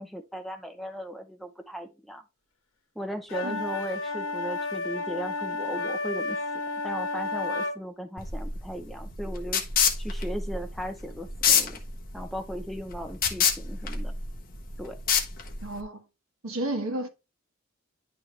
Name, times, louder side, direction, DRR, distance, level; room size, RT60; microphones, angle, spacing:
voice 1, 0.0-2.2 3.0-6.4 6.8-9.6 10.0-11.8 12.1-14.1 14.8-15.0, equal, ahead, 0.7 m, -37 dB
sound 1, 3.3-7.8, left 3 dB, 70° left, 1.6 m, -31 dB
sound 2, 8.2-15.8, left 6 dB, 40° left, 1.4 m, -27 dB
voice 2, 15.6-16.0 16.4-17.1, right 1 dB, 75° right, 1.7 m, -32 dB
10.5 x 4.5 x 3.4 m
head